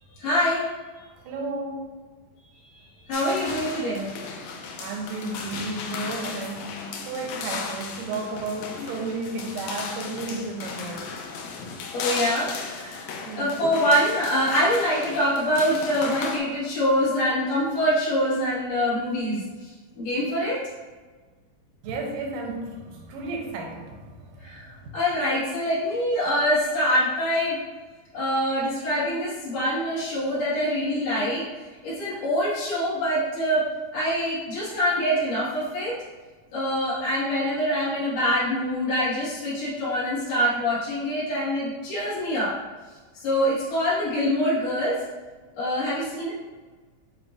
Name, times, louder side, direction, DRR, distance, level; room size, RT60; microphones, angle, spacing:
voice 1, 0.2-0.6 1.0-1.1 2.8-4.1 11.9-13.1 13.4-20.6 24.4-27.6 28.1-31.4 31.8-33.7 33.9-36.0 36.5-42.6 43.1-45.0 45.5-46.3, equal, 55° left, -10 dB, 2.6 m, -25 dB
voice 2, 1.1-1.9 4.8-11.3 13.2-13.5 21.8-24.9, right 3 dB, 75° right, 0 dB, 1.8 m, -33 dB
sound 1, 3.1-16.4, left 5 dB, 85° left, 1.6 m, -36 dB
6.6 x 2.8 x 2.5 m, 1.4 s
omnidirectional pair, 3.7 m